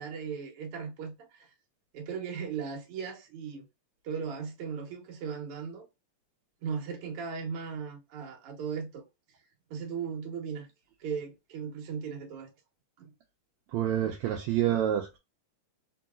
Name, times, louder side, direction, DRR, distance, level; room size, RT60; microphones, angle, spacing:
voice 1, 0.0-1.5 1.9-3.6 4.0-5.9 6.6-9.0 9.7-10.7 11.0-12.5 13.0-13.1, right 6 dB, 60° right, 1.7 m, -37 dB
voice 2, 13.7-15.2, right 11 dB, 80° right, 1.8 m, -28 dB
4.5 x 2.9 x 2.3 m
omnidirectional pair, 3.5 m